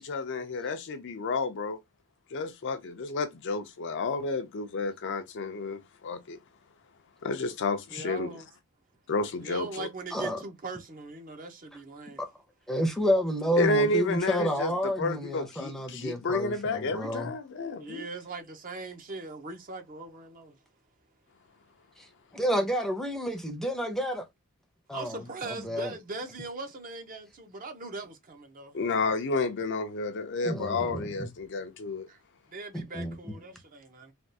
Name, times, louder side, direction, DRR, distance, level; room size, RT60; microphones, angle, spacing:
voice 1, 0.0-1.8 2.3-6.4 7.2-8.3 9.1-9.9 13.6-18.0 28.7-32.1, left 3 dB, 55° left, 0.5 m, -31 dB
voice 2, 7.9-8.4 9.4-12.2 17.8-20.6 24.9-29.0 32.1-32.2 32.5-34.1, right 3 dB, 40° right, 0.6 m, -40 dB
voice 3, 12.7-17.3 22.0-22.1 22.3-24.2 24.9-25.2 25.5-25.9 30.4-31.3 32.7-33.2, equal, ahead, 0.6 m, -30 dB
3.4 x 2.4 x 2.7 m
head